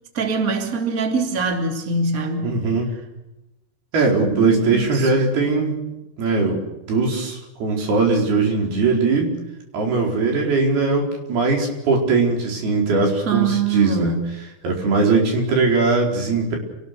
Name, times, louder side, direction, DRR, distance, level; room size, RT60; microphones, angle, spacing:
voice 1, 0.1-2.6 4.3-5.1 13.2-14.2, right 4 dB, 25° right, 4 dB, 2.8 m, -23 dB
voice 2, 2.4-2.9 3.9-5.8 6.2-9.3 9.7-14.2 14.6-16.6, right 3 dB, 85° right, 1 dB, 6.5 m, -20 dB
28.5 x 19.0 x 6.8 m, 0.95 s
omnidirectional pair, 4.4 m